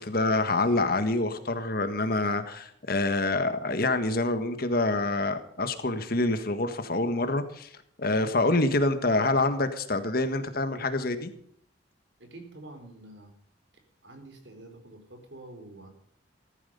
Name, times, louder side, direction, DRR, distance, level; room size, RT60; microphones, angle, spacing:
voice 1, 0.0-7.7 8.0-11.3, left 2 dB, 50° left, 9 dB, 1.6 m, -26 dB
voice 2, 12.2-13.3 13.7-15.9, right 2 dB, 65° right, 5 dB, 4.2 m, -47 dB
15.5 x 14.0 x 5.4 m, 0.68 s
head